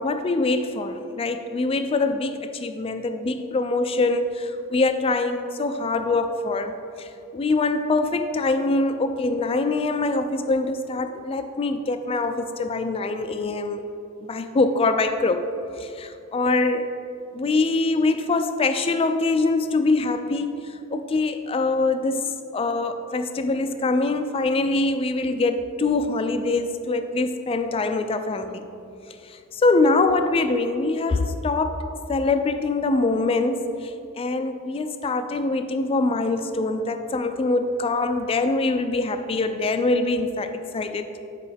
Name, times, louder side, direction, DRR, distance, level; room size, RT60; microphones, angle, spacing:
voice 1, 0.0-13.8 14.2-15.5 15.8-16.9 17.3-28.7 29.2-41.1, left 3 dB, 25° left, 9 dB, 0.3 m, -24 dB
8.2 x 4.9 x 3.4 m, 2.6 s
head